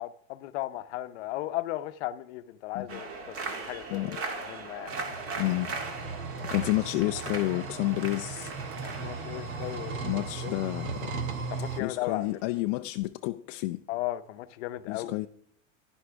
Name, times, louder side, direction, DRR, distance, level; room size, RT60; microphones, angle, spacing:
voice 1, 0.0-4.9 8.8-10.0 10.4-10.6 11.5-12.3 13.9-15.1, left 15 dB, 60° left, 0.8 m, -36 dB
sound 1, 2.9-12.6, right 3 dB, 35° right, 2.0 m, -39 dB
sound 2, 4.9-11.8, right 4 dB, 85° right, 1.9 m, -37 dB
voice 2, 5.4-5.7 6.5-8.5 10.0-11.1 11.8-13.8 14.9-15.3, left 19 dB, 40° left, 0.4 m, -30 dB
11.0 x 11.0 x 3.5 m
supercardioid pair, 135°, 40 cm